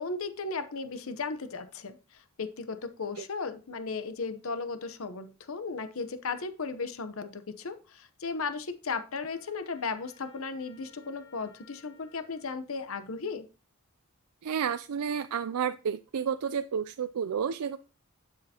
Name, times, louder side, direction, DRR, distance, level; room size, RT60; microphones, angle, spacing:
voice 1, 0.0-13.5, left 4 dB, 70° left, 10 dB, 0.8 m, -36 dB
Trumpet, 9.1-12.5, left 5 dB, 50° left, 2.4 m, -59 dB
voice 2, 14.4-17.8, right 7 dB, 90° right, 11 dB, 0.4 m, -31 dB
11.0 x 6.6 x 2.9 m, 0.33 s
head